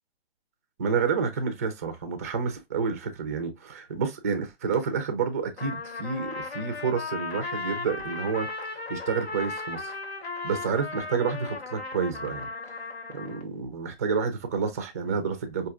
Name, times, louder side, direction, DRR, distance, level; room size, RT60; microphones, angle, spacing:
voice 1, 0.8-9.9 10.4-12.5 13.1-15.7, right 5 dB, 15° right, 0.4 m, -29 dB
Trumpet, 5.6-13.5, left 3 dB, 80° left, 1.2 m, -36 dB
4.7 x 2.7 x 2.4 m
hypercardioid pair, 145°, 32 cm